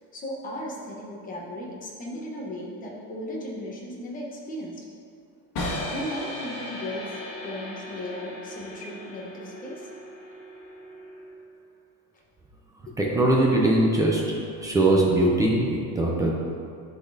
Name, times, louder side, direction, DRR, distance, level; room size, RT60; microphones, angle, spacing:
voice 1, 0.1-4.8 5.9-9.9 12.9-13.0, left 1 dB, 20° left, -3 dB, 0.9 m, -36 dB
sound 1, 5.6-11.5, left 1 dB, 60° left, 1.6 m, -37 dB
voice 2, 13.0-14.2 14.6-16.3, right 1 dB, 10° right, -3 dB, 0.3 m, -21 dB
11.5 x 4.0 x 2.7 m, 2.5 s
cardioid pair, 160°, 42 cm